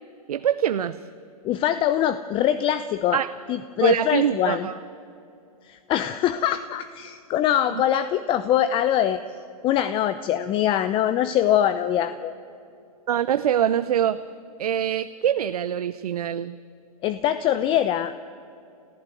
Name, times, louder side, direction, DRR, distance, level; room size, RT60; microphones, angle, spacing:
voice 1, 0.3-1.0 3.1-3.3 3.8-4.8 13.1-14.2 14.6-16.6, right 10 dB, 75° right, 12 dB, 0.8 m, -24 dB
voice 2, 1.4-3.2 3.5-4.7 5.6-9.2 9.6-12.3 17.0-18.1, left 11 dB, 25° left, 13 dB, 0.7 m, -23 dB
29.0 x 15.0 x 9.2 m, 2.7 s
hypercardioid pair, 130°, 20 cm